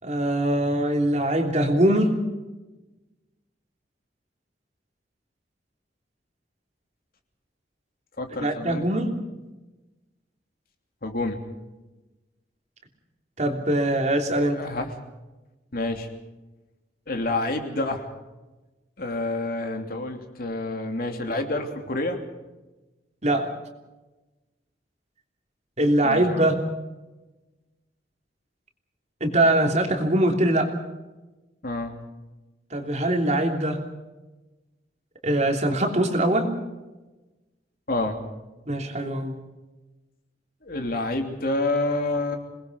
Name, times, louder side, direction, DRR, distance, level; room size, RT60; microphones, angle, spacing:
voice 1, 0.0-2.2 8.4-9.2 13.4-14.6 23.2-23.5 25.8-26.7 29.2-30.7 32.7-33.9 35.2-36.6 38.7-39.3, right 1 dB, 40° right, 3 dB, 3.2 m, -22 dB
voice 2, 8.2-8.9 11.0-11.4 14.4-14.9 15.7-16.1 17.1-18.1 19.0-22.2 26.0-26.5 31.6-31.9 37.9-38.2 40.6-42.4, left 2 dB, 55° left, 4 dB, 3.0 m, -28 dB
28.0 x 20.5 x 5.3 m, 1.1 s
head